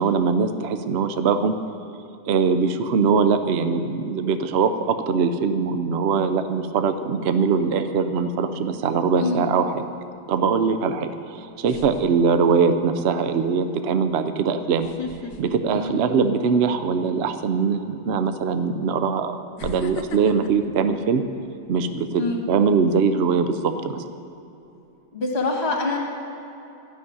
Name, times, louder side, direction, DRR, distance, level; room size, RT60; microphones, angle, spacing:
voice 1, 0.0-1.6 2.3-9.8 10.3-14.9 15.4-21.2 21.7-24.0, right 5 dB, 75° right, 9 dB, 0.5 m, -22 dB
sound 1, 8.5-9.0 10.9-11.0 11.6-12.8 13.2-13.5 14.8-16.6 17.0-17.3 18.3-18.4 19.6-21.8 22.3-22.6, left 5 dB, 65° left, 1.3 m, -38 dB
voice 2, 25.1-26.0, left 2 dB, 35° left, -1 dB, 2.3 m, -25 dB
13.0 x 7.1 x 9.5 m, 2.9 s
omnidirectional pair, 2.0 m